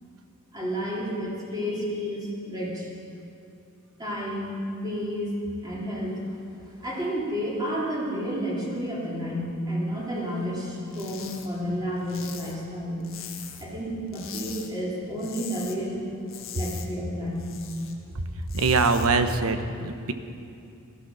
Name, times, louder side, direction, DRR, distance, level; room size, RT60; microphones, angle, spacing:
voice 1, 0.5-2.9 4.0-5.3 5.6-6.2 6.8-13.0 13.6-16.0 16.5-17.5, equal, 20° right, -6 dB, 3.5 m, -31 dB
sound 1, 10.9-11.5 11.8-13.8 14.1-14.7 15.0-15.8 16.1-17.9 18.3-19.1, left 9 dB, 65° left, 1.5 m, -41 dB
voice 2, 18.5-20.1, right 3 dB, 90° right, 8 dB, 1.0 m, -23 dB
17.0 x 12.5 x 6.3 m, 2.6 s
head